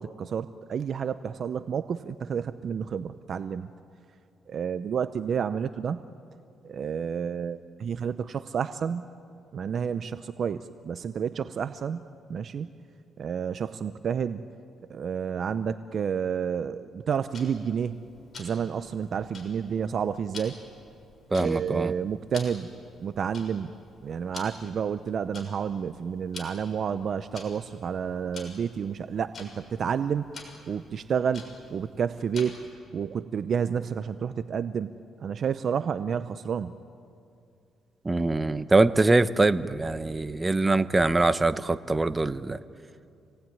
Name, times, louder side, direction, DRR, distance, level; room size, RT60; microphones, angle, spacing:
voice 1, 0.0-3.7 4.5-6.0 6.6-9.1 9.5-12.0 12.3-12.7 13.2-14.4 14.9-18.0 18.4-20.6 21.4-22.7 23.0-23.7 24.0-30.3 30.7-32.6 32.9-34.9 35.2-36.8, right 7 dB, 55° right, 12 dB, 0.7 m, -30 dB
Tick-tock, 17.3-32.8, left 3 dB, 40° left, 6.4 m, -48 dB
voice 2, 21.3-21.9 38.0-42.6, right 2 dB, 20° right, 12 dB, 0.9 m, -23 dB
28.0 x 19.0 x 9.4 m, 2.5 s
cardioid pair, 90°, 0 cm